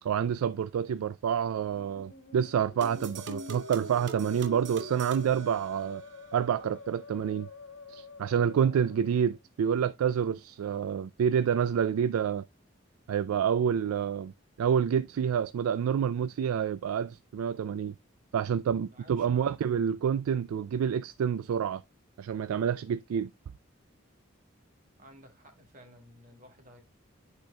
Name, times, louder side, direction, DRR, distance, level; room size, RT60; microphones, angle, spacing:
voice 1, 0.0-6.0 6.3-7.5 7.9-12.4 13.1-14.3 14.6-17.9 18.3-21.8 22.2-23.3, right 8 dB, 90° right, 0.3 m, -28 dB
Musical instrument, 1.3-9.4, left 3 dB, 65° left, 1.4 m, -49 dB
sound 1, 2.8-6.3, right 3 dB, 55° right, 0.7 m, -42 dB
voice 2, 8.6-9.0 18.9-19.5 25.0-26.8, equal, 40° right, 1.3 m, -54 dB
12.0 x 4.4 x 2.2 m
head